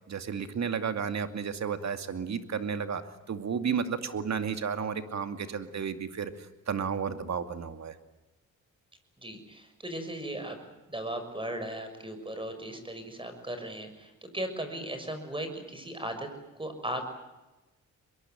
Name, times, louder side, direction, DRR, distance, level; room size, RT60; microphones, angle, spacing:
voice 1, 0.1-3.0 3.3-8.0, right 6 dB, 55° right, 9 dB, 2.4 m, -32 dB
voice 2, 9.2-10.6 10.9-16.3 16.5-17.0, right 1 dB, 15° right, 7 dB, 6.4 m, -37 dB
23.0 x 23.0 x 9.1 m, 1.1 s
cardioid pair, 85°, 32 cm